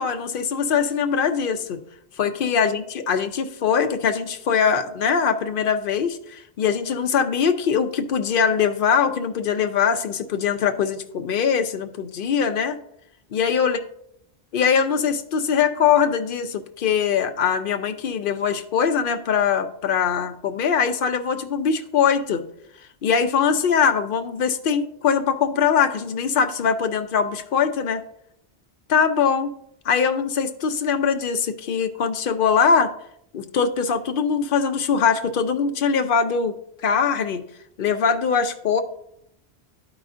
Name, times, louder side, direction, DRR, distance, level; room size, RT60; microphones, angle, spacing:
voice 1, 0.0-1.8 2.2-12.8 13.3-13.8 14.5-22.4 23.0-28.0 28.9-29.5 29.9-32.9 33.3-36.6 36.8-37.4 37.8-38.8, left 6 dB, 60° left, 8 dB, 0.8 m, -22 dB
12.0 x 4.8 x 2.5 m, 0.72 s
omnidirectional pair, 1.1 m